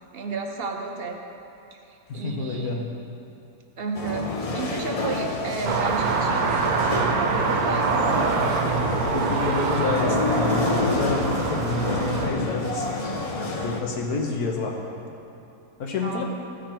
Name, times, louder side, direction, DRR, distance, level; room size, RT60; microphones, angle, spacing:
voice 1, 0.1-1.2 1.7-2.9 3.8-8.0 15.9-16.2, right 4 dB, 55° right, 3 dB, 0.7 m, -33 dB
voice 2, 2.1-2.9 9.1-12.9 13.3-14.8 15.8-16.2, left 3 dB, 75° left, 1 dB, 1.5 m, -28 dB
sound 1, 3.9-13.8, left 3 dB, 45° left, 0.4 m, -29 dB
sound 2, 5.6-12.3, right 4 dB, 70° right, 1.2 m, -25 dB
15.0 x 5.0 x 4.4 m, 2.8 s
omnidirectional pair, 1.7 m